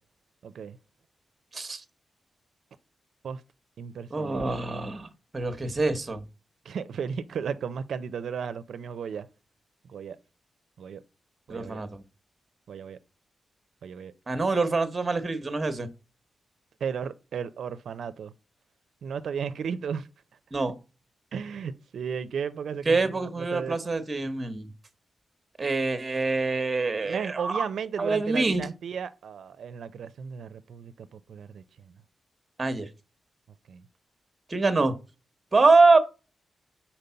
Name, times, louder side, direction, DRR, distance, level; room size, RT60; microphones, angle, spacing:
voice 1, 0.4-0.8 3.2-3.4 3.8-4.4 6.7-9.3 9.9-10.2 10.8-11.0 11.5-11.8 12.7-13.0 13.8-14.1 16.8-18.3 19.0-20.1 21.3-23.8 27.0-31.6 33.7-33.8, right 7 dB, 85° right, 0.4 m, -34 dB
voice 2, 1.5-1.8 4.1-5.1 5.3-6.2 11.5-12.0 14.3-15.9 20.5-20.8 22.9-24.7 25.6-27.6 28.0-28.7 32.6-32.9 34.5-34.9 35.5-36.0, right 3 dB, 25° right, 0.8 m, -24 dB
5.2 x 4.4 x 5.5 m
wide cardioid pair, 155°, 0 cm